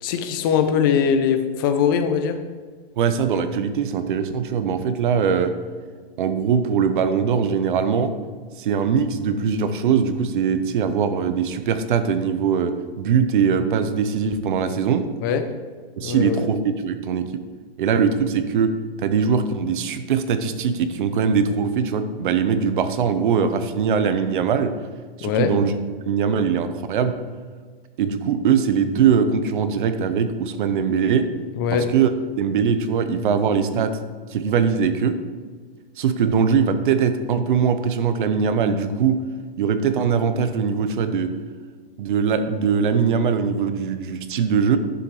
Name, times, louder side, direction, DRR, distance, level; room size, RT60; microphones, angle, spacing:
voice 1, 0.0-2.4 15.2-15.4 16.0-16.4 25.2-25.5 31.6-31.9, left 7 dB, 20° left, 8 dB, 0.4 m, -21 dB
voice 2, 3.0-5.5 6.2-8.1 8.6-15.0 16.0-17.3 17.8-24.7 25.2-25.7 26.0-27.1 28.0-31.3 31.7-32.1 32.4-34.0 34.3-35.2 36.0-39.2 39.6-41.3 42.0-44.8, right 6 dB, 55° right, 10 dB, 0.9 m, -21 dB
11.0 x 7.0 x 3.2 m, 1.5 s
hypercardioid pair, 155°, 30 cm